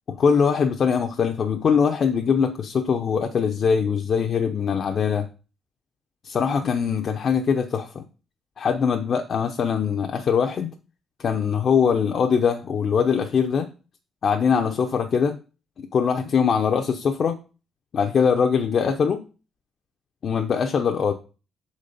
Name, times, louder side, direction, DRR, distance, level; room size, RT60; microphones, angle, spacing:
voice 1, 0.2-5.3 6.2-8.0 8.6-10.7 11.2-13.7 14.2-15.4 15.8-17.4 17.9-19.2 20.2-21.1, left 6 dB, 55° left, 5 dB, 0.7 m, -22 dB
5.9 x 4.2 x 5.1 m, 0.34 s
cardioid pair, 90°, 0 cm